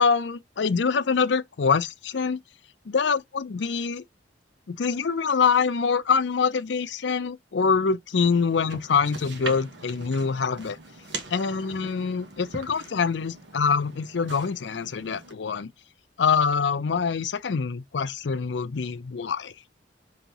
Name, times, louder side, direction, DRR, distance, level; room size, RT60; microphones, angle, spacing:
voice 1, 0.0-2.4 2.9-4.0 4.7-10.8 11.3-15.7 16.2-19.5, left 5 dB, 70° left, 0.5 m, -25 dB
sound 1, 8.1-15.3, right 3 dB, 70° right, 1.3 m, -41 dB
5.4 x 3.0 x 2.9 m
head